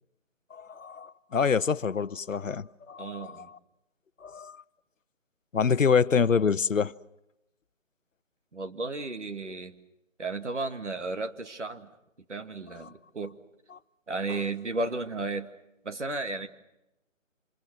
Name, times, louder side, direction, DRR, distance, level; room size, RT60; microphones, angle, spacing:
voice 1, 0.5-3.6 4.2-4.6 5.5-6.9 12.8-12.9 13.7-13.8, left 6 dB, 75° left, 0.9 m, -26 dB
voice 2, 3.0-3.5 8.5-9.7 10.2-11.9 12.3-13.3 14.1-15.5 15.8-16.5, right 3 dB, 60° right, 2.2 m, -33 dB
28.5 x 26.5 x 6.1 m
figure-of-eight pair, 180°, 39 cm